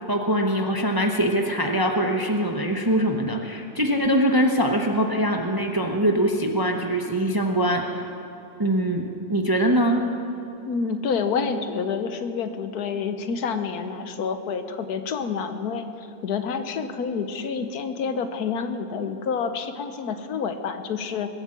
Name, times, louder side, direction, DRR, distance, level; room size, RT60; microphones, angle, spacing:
voice 1, 0.1-8.0 8.6-10.0, right 1 dB, 20° right, 3 dB, 0.7 m, -23 dB
voice 2, 10.7-15.8 16.2-21.3, left 5 dB, 80° left, 9 dB, 1.4 m, -28 dB
21.5 x 8.2 x 7.6 m, 2.7 s
omnidirectional pair, 1.7 m